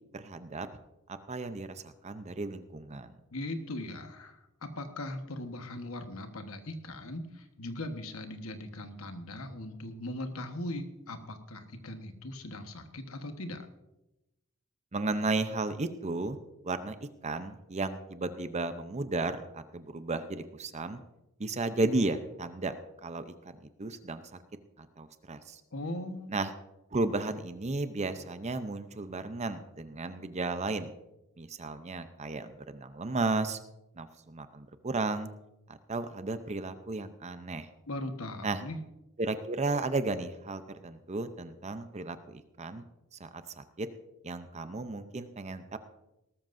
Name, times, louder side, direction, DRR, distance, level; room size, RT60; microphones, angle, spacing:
voice 1, 0.1-0.7 1.3-3.1 14.9-16.4 16.6-17.0 17.2-21.0 21.4-22.7 23.0-23.5 23.8-24.2 25.0-25.6 26.3-26.5 26.9-30.9 31.4-33.6 34.0-35.3 35.7-37.7 38.4-38.6 39.2-42.8 43.2-43.9 44.2-45.8, right 3 dB, 30° right, 10 dB, 0.7 m, -34 dB
voice 2, 3.3-13.7 25.7-26.3 37.9-38.8, left 1 dB, 75° left, 7 dB, 1.3 m, -39 dB
18.5 x 13.0 x 2.6 m, 0.94 s
head